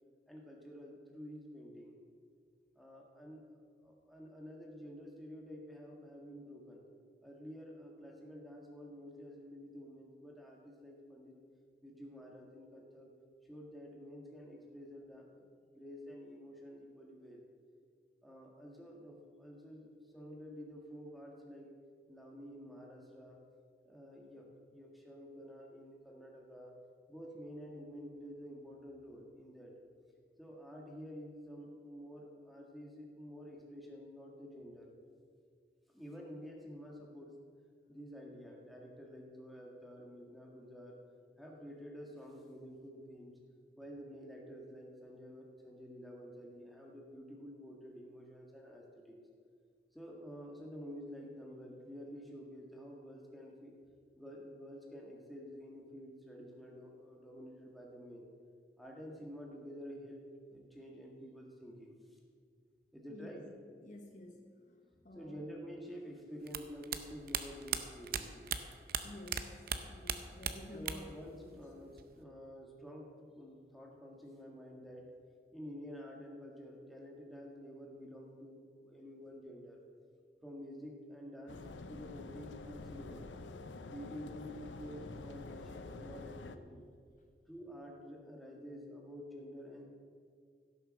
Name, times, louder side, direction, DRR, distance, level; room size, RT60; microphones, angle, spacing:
voice 1, 0.3-2.0 2.7-6.8 7.2-11.4 11.8-13.1 13.4-15.4 15.7-17.4 18.2-21.7 22.1-23.4 23.8-26.7 27.1-29.7 30.4-34.9 35.9-37.5 37.9-41.0 41.4-43.3 43.8-49.2 49.9-53.7 54.1-58.3 58.8-60.2 60.5-62.2 62.9-63.5 65.1-68.5 70.7-75.1 75.5-79.8 80.4-83.3 83.9-86.9 87.5-89.9, equal, ahead, -2 dB, 1.7 m, -50 dB
voice 2, 63.1-63.4 63.8-65.5 69.0-69.5 69.8-71.0 71.3-71.6, left 1 dB, 45° left, 3 dB, 1.0 m, -52 dB
sound 1, 66.5-69.4 69.7-71.2 71.4-72.2, right 8 dB, 55° right, 0.7 m, -37 dB
sound 2, 81.5-86.6, left 3 dB, 90° left, 0.7 m, -48 dB
16.0 x 7.0 x 6.3 m, 2.1 s
head